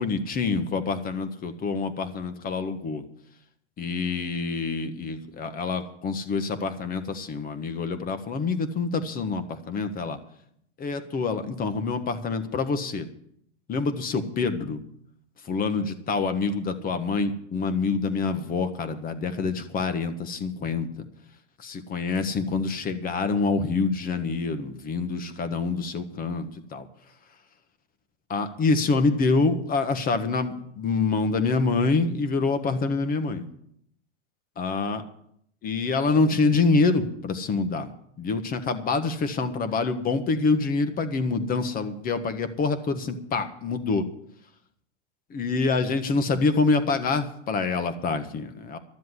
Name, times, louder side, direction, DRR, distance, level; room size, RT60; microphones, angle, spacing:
voice 1, 0.0-3.0 3.8-10.2 10.8-13.1 13.7-14.8 15.4-21.0 21.6-26.9 28.3-33.4 34.6-35.0 35.6-37.9 38.2-44.0 45.3-48.8, left 4 dB, 25° left, 10 dB, 1.5 m, -26 dB
13.0 x 7.5 x 9.7 m, 0.70 s
hypercardioid pair, 125°, 34 cm